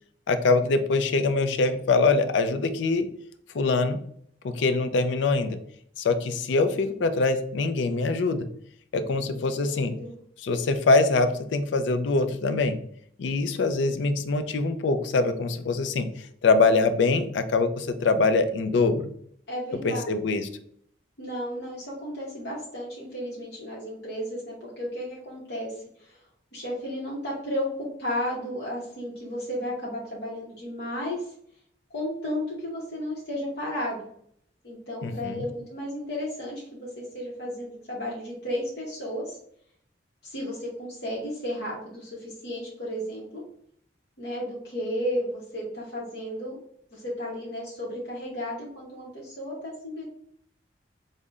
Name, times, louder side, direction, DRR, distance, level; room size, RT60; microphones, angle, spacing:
voice 1, 0.3-3.1 3.5-4.0 4.4-5.6 6.0-8.5 8.9-9.9 10.4-12.8 13.2-16.1 16.4-19.1 19.8-20.5 35.0-35.4, left 3 dB, 85° left, 10 dB, 0.4 m, -23 dB
voice 2, 9.2-10.1 19.5-20.0 21.2-26.2 26.5-31.3 31.9-34.1 34.6-39.4 40.2-43.4 44.2-46.5 46.9-50.0, equal, 65° left, -5 dB, 0.9 m, -33 dB
5.3 x 2.1 x 2.4 m, 0.66 s
head